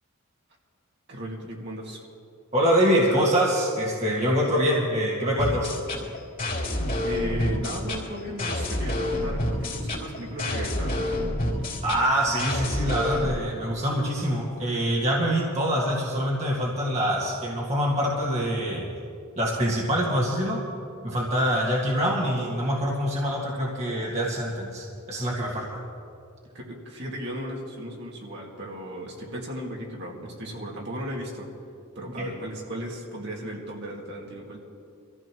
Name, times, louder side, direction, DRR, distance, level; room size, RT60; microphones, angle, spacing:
voice 1, 1.1-2.1 7.0-11.3 26.5-31.5 32.0-34.6, equal, 55° right, -2 dB, 2.2 m, -36 dB
voice 2, 2.5-5.7 11.8-18.9 19.4-20.6 21.0-25.8 32.2-32.3, equal, 30° right, -4 dB, 1.9 m, -25 dB
sound 1, 5.4-13.4, left 1 dB, 40° left, 3.0 m, -28 dB
24.5 x 14.5 x 3.1 m, 2.4 s
head